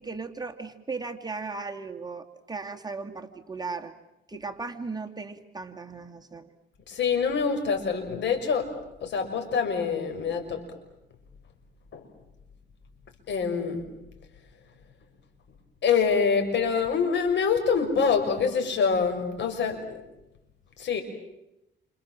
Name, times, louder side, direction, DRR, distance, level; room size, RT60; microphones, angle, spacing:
voice 1, 0.0-3.9 4.3-6.5, right 4 dB, 20° right, 4 dB, 2.4 m, -37 dB
voice 2, 6.9-10.6 11.9-12.1 13.3-13.9 15.8-20.0 20.8-21.0, left 6 dB, 65° left, 6 dB, 6.2 m, -25 dB
29.0 x 27.5 x 7.6 m, 0.89 s
cardioid pair, 90°, 20 cm